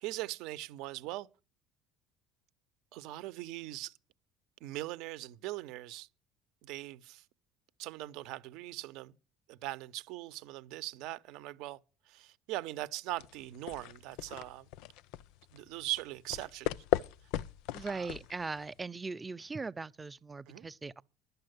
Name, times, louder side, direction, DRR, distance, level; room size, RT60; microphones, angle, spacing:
voice 1, 0.0-1.3 2.9-4.0 4.6-6.1 6.6-7.3 7.8-9.1 9.5-11.8 12.1-14.7 15.5-16.8 17.8-18.1 20.5-20.7, right 16 dB, 70° right, 0.7 m, -41 dB
sound 1, 13.2-18.8, left 13 dB, 75° left, 0.5 m, -37 dB
voice 2, 17.7-21.0, right 4 dB, 20° right, 0.5 m, -39 dB
11.5 x 6.7 x 7.9 m
supercardioid pair, 95°, 0 cm